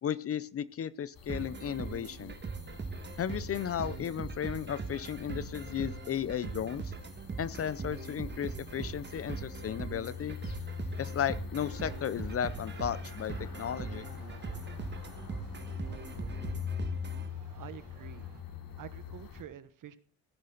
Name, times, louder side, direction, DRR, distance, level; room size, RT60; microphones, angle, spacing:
voice 1, 0.0-2.4 3.2-6.8 7.4-10.4 11.0-14.1, left 9 dB, 35° left, 19 dB, 0.6 m, -34 dB
sound 1, 1.1-19.4, left 7 dB, 60° left, 3.3 m, -44 dB
sound 2, 1.3-17.3, right 4 dB, 30° right, 1.6 m, -41 dB
sound 3, 11.8-18.4, right 7 dB, 90° right, 4.0 m, -58 dB
voice 2, 17.5-18.3 18.8-20.0, right 10 dB, 55° right, 14 dB, 1.4 m, -47 dB
17.0 x 10.0 x 3.9 m, 0.38 s
cardioid pair, 155°, 38 cm